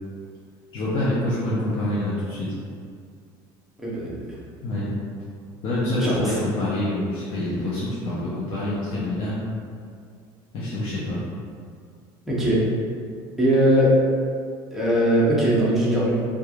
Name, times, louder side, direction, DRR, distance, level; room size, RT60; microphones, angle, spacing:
voice 1, 0.7-2.5 4.6-4.9 5.6-9.4 10.5-11.2, left 1 dB, 50° left, -9 dB, 0.6 m, -26 dB
voice 2, 3.8-4.2 6.0-6.3 12.3-12.6 13.4-13.9 14.7-16.1, equal, 5° right, -7 dB, 0.6 m, -20 dB
3.0 x 2.3 x 2.4 m, 2.2 s
cardioid pair, 125°, 11 cm